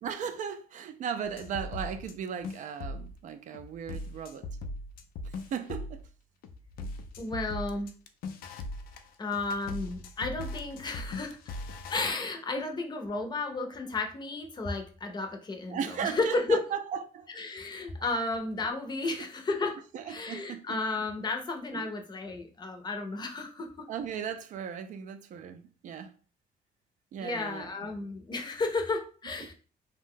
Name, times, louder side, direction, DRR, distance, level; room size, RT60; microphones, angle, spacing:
voice 1, 0.0-4.5 5.2-6.0 15.7-17.3 19.0-19.1 19.9-20.8 21.7-21.9 23.9-26.1 27.1-27.7 29.4-29.5, right 7 dB, 60° right, 0.4 m, -37 dB
sound 1, 1.2-2.2 2.4-3.2 3.5-6.1 6.4-12.1, left 2 dB, 80° left, 0.4 m, -40 dB
voice 2, 7.2-7.9 9.2-11.4 11.9-16.6 17.4-19.8 20.1-23.9 27.2-29.5, left 3 dB, 30° left, 0.6 m, -33 dB
2.6 x 2.1 x 3.6 m
cardioid pair, 110°, 15 cm